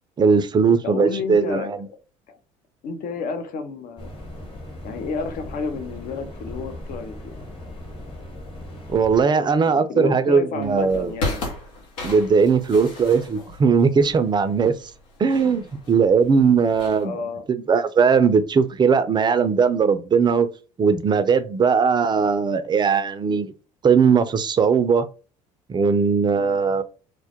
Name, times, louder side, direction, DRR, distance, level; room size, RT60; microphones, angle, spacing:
voice 1, 0.2-1.8 8.9-11.1 12.0-14.7 15.2-17.2 17.5-20.5 20.8-23.5 23.8-25.1 25.7-26.8, right 5 dB, 25° right, 0.4 m, -19 dB
voice 2, 0.8-2.0 2.3-2.4 2.8-4.1 4.8-7.4 9.7-11.4 16.9-17.5 26.3-26.6, left 4 dB, 55° left, 0.6 m, -31 dB
sound 1, 4.0-9.2, left 1 dB, 30° left, 1.1 m, -38 dB
sound 2, 10.6-17.0, left 2 dB, 85° left, 0.9 m, -35 dB
2.2 x 2.0 x 2.7 m
hypercardioid pair, 65°, 17 cm